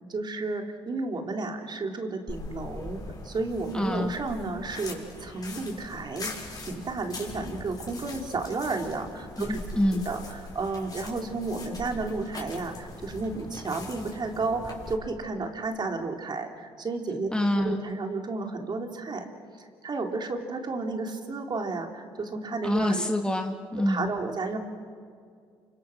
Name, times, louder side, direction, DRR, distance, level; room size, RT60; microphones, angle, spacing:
voice 1, 0.1-6.3 6.6-9.6 9.9-19.3 19.6-23.2 23.9-24.6, right 3 dB, 40° right, 3 dB, 3.8 m, -32 dB
sound 1, 2.3-14.9, left 2 dB, 35° left, 6.4 m, -41 dB
voice 2, 3.7-4.1 9.5-10.1 17.3-17.8 22.6-24.0, left 1 dB, 10° left, 3 dB, 2.0 m, -26 dB
29.0 x 26.0 x 6.5 m, 2.2 s
supercardioid pair, 65°, 11 cm